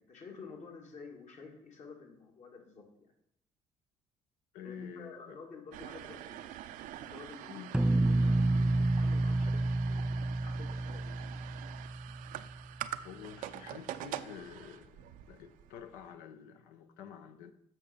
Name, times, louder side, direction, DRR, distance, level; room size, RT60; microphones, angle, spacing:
voice 1, 0.0-3.1 4.6-6.5 6.9-7.8 8.2-11.7, left 5 dB, 55° left, 2.1 m, -51 dB
voice 2, 4.5-5.4 7.5-7.7 9.9-10.0 12.9-17.5, left 8 dB, 80° left, 0.7 m, -49 dB
sound 1, 5.7-16.1, right 12 dB, 70° right, 0.5 m, -45 dB
sound 2, 7.7-12.6, right 2 dB, 5° right, 0.3 m, -30 dB
7.3 x 5.9 x 5.1 m
hypercardioid pair, 60°, 14 cm